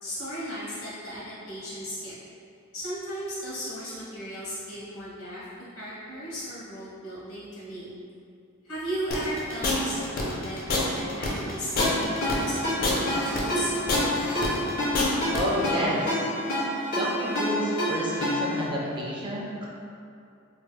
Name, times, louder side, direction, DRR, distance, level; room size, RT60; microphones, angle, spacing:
voice 1, 0.0-2.1 2.7-5.4 5.7-7.9 8.6-11.9 12.2-14.1, equal, 85° left, -9 dB, 1.3 m, -36 dB
sound 1, 9.1-15.4, left 2 dB, 45° left, 0.5 m, -28 dB
Ringtone, 11.8-18.6, left 1 dB, 70° left, 1.5 m, -28 dB
voice 2, 15.3-16.3 16.9-19.7, equal, 25° right, -3 dB, 0.4 m, -30 dB
3.2 x 3.2 x 2.2 m, 2.5 s
head